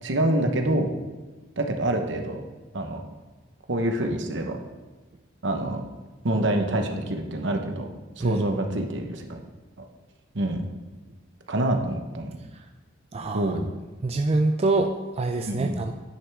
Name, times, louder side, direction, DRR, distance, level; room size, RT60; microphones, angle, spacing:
voice 1, 0.0-0.9 1.6-2.4 2.7-3.0 3.7-4.6 5.4-5.8 6.2-7.9 8.2-9.4 9.8-9.9 10.3-10.6 11.5-12.4 13.3-13.7 15.5-15.8, right 1 dB, 65° right, 4 dB, 1.1 m, -26 dB
voice 2, 13.1-13.6 14.0-15.9, right 2 dB, 30° right, 6 dB, 0.4 m, -25 dB
9.9 x 9.3 x 3.5 m, 1.2 s
head